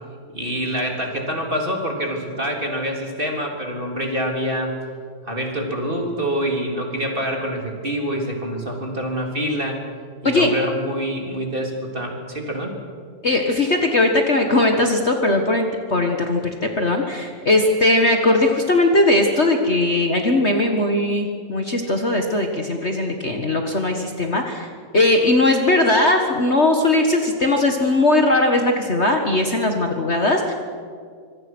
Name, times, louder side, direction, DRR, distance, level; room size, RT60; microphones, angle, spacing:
voice 1, 0.3-4.7 5.2-9.8 10.2-12.8, equal, 15° right, 1 dB, 3.3 m, -26 dB
voice 2, 13.2-15.6 15.9-30.5, left 2 dB, 80° left, 3 dB, 0.6 m, -19 dB
26.0 x 24.0 x 6.2 m, 2.1 s
omnidirectional pair, 4.1 m